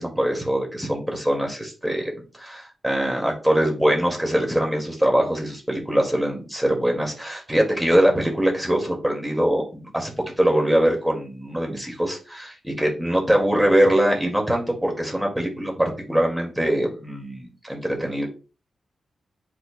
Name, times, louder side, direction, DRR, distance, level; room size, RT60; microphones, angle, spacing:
voice 1, 0.0-2.1 2.4-10.1 10.4-18.3, right 1 dB, 5° right, 0 dB, 2.1 m, -22 dB
11.5 x 4.5 x 2.2 m, 0.35 s
wide cardioid pair, 125°, 0 cm